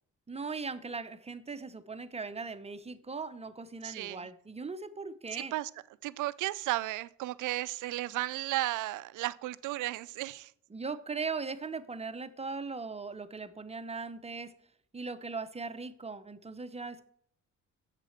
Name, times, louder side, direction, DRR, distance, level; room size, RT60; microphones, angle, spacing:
voice 1, 0.3-5.5 10.7-14.5 14.9-17.1, right 4 dB, 20° right, 0.8 m, -39 dB
voice 2, 3.8-4.3 5.3-5.7 6.0-10.5, right 17 dB, 80° right, 0.5 m, -34 dB
7.5 x 7.5 x 6.5 m
cardioid pair, 90°, 30 cm